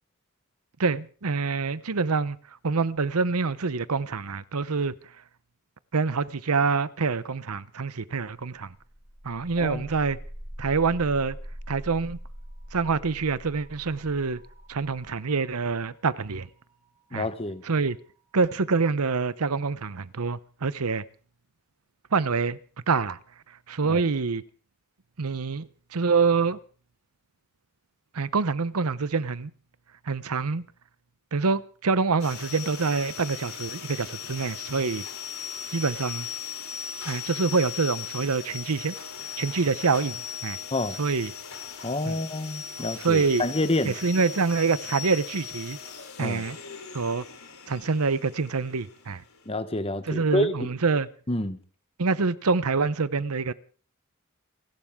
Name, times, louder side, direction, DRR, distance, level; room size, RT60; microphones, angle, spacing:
voice 1, 0.8-2.4 2.6-4.9 5.9-8.7 9.2-10.2 10.6-11.4 11.7-12.2 12.7-14.4 14.7-16.5 17.1-17.3 17.7-18.0 18.3-21.0 22.1-22.6 22.9-23.2 23.7-24.4 25.2-26.6 28.1-29.5 30.1-30.6 31.3-35.1 35.7-36.3 37.1-39.0 39.4-40.6 41.0-41.3 42.1-42.2 43.0-43.4 43.9-45.8 46.2-46.6 46.9-47.2 47.7-49.2 50.1-51.1 52.0-53.5, right 4 dB, 90° right, 0.8 m, -26 dB
sound 1, 8.8-18.5, equal, 30° right, 3.8 m, -44 dB
voice 2, 17.1-17.6 23.8-24.0 40.7-41.0 41.8-43.9 46.2-46.4 49.5-50.7 51.3-51.6, left 2 dB, 25° left, 1.2 m, -28 dB
sound 2, 32.2-49.5, left 8 dB, 70° left, 3.6 m, -38 dB
29.0 x 12.0 x 3.7 m
head